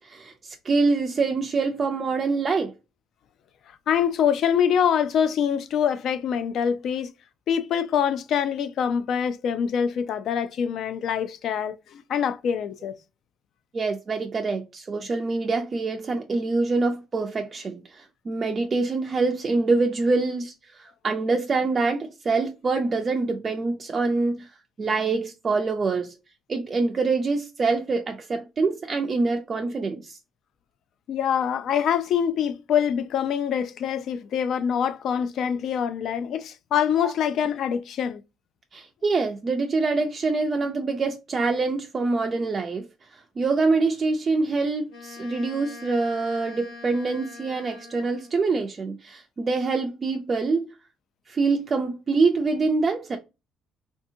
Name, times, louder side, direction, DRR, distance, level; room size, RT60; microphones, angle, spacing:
voice 1, 0.0-2.7 13.7-24.5 24.8-26.2 26.5-30.2 37.0-37.1 38.7-42.8 43.1-50.7 51.3-53.2, right 3 dB, 25° right, 0.4 m, -25 dB
voice 2, 3.9-7.1 7.5-13.0 31.1-38.2, left 8 dB, 55° left, 0.3 m, -25 dB
Wind instrument woodwind instrument, 44.9-48.4, left 3 dB, 85° left, 1.4 m, -43 dB
3.4 x 2.7 x 2.6 m
cardioid pair, 150°, 0 cm